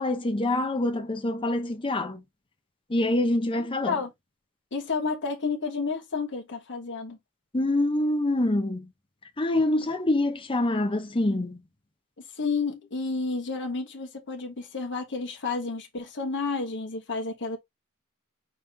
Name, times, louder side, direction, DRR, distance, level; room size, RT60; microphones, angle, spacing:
voice 1, 0.0-2.2 2.9-4.0 7.5-8.9 9.4-11.6, left 1 dB, 25° left, 0.7 m, -25 dB
voice 2, 4.7-7.2 12.4-17.6, left 4 dB, 55° left, 1.3 m, -31 dB
5.3 x 3.0 x 3.3 m
head